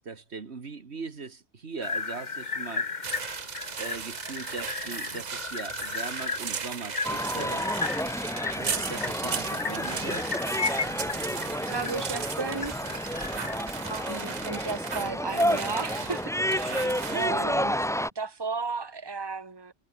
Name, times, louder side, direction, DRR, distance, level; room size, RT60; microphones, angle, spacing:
voice 1, 0.0-2.9 3.8-7.7 8.6-10.3 17.1-17.4, right 4 dB, 70° right, 2.0 m, -39 dB
sound 1, 1.8-14.0, left 4 dB, 40° left, 1.6 m, -35 dB
sound 2, 3.0-17.3, right 6 dB, 40° right, 0.9 m, -37 dB
sound 3, 7.0-18.1, equal, 5° left, 1.8 m, -30 dB
voice 2, 11.7-12.7 13.8-17.9 18.1-19.7, right 4 dB, 20° right, 1.7 m, -34 dB
omnidirectional pair, 1.1 m